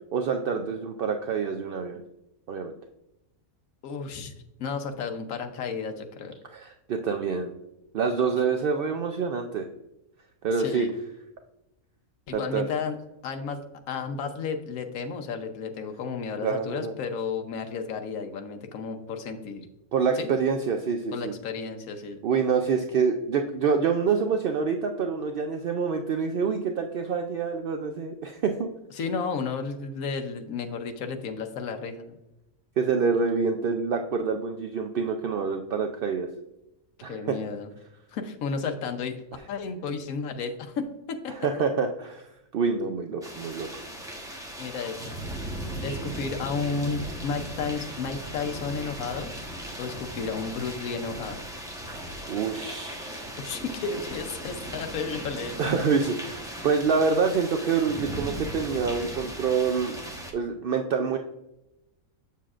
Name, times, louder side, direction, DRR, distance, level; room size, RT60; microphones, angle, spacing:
voice 1, 0.1-2.0 2.5-2.8 6.5-7.5 7.9-9.7 10.4-10.9 12.3-12.6 16.4-16.9 19.9-21.3 22.2-28.7 32.8-36.3 37.0-37.3 41.3-43.8 52.3-53.2 55.6-60.0 60.3-61.2, right 5 dB, 70° right, 5 dB, 0.5 m, -26 dB
voice 2, 3.8-4.3 4.6-6.3 10.6-10.9 12.3-13.0 13.2-13.6 13.9-19.7 20.2-20.3 21.1-22.2 29.0-32.2 37.1-37.7 38.1-39.1 39.5-41.3 44.6-45.2 45.8-49.3 49.8-51.4 53.4-55.9, left 5 dB, 75° left, 5 dB, 1.2 m, -32 dB
sound 1, 43.2-60.3, right 1 dB, 5° right, 0.8 m, -38 dB
7.5 x 6.9 x 2.4 m, 0.91 s
omnidirectional pair, 1.5 m